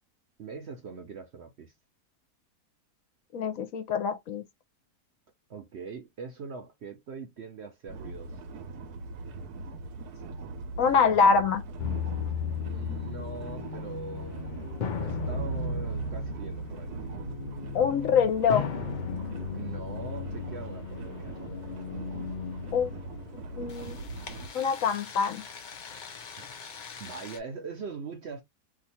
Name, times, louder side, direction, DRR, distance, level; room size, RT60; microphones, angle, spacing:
voice 1, 0.4-1.7 5.5-8.4 12.6-14.6 15.0-16.9 19.5-21.3 26.4-26.5 27.0-28.4, right 5 dB, 60° right, 0.8 m, -42 dB
voice 2, 3.3-4.4 10.8-11.6 17.7-18.7 22.7-22.9 23.6-24.1 24.5-25.4, left 6 dB, 65° left, 1.0 m, -25 dB
sound 1, 7.9-24.5, right 3 dB, 85° right, 1.2 m, -41 dB
sound 2, 11.8-27.4, left 5 dB, 85° left, 0.4 m, -37 dB
2.8 x 2.4 x 4.1 m
omnidirectional pair, 1.6 m